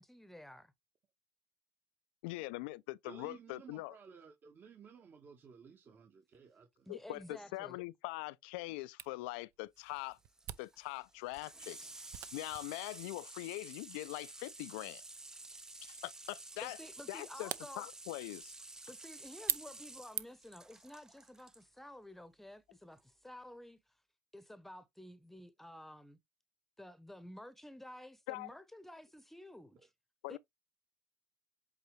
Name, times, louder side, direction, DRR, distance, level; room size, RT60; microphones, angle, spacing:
voice 1, 0.0-0.6 6.9-7.8 16.6-17.8 18.9-23.8 24.3-26.2 26.8-29.9 30.3-30.4, left 1 dB, 5° left, 0.9 m, -52 dB
voice 2, 2.2-3.9 6.9-10.2 10.6-15.0 15.8-16.8 17.1-18.5 28.3-28.5 30.2-30.4, left 20 dB, 85° left, 0.4 m, -43 dB
voice 3, 3.0-6.9 29.7-29.8, right 6 dB, 40° right, 1.3 m, -56 dB
Camera, 9.0-20.6, right 13 dB, 60° right, 0.6 m, -46 dB
Water tap faucet / Sink (filling or washing), 9.8-21.6 22.9-23.0, right 2 dB, 10° right, 0.4 m, -52 dB
8.1 x 3.7 x 3.2 m
supercardioid pair, 100°, 5 cm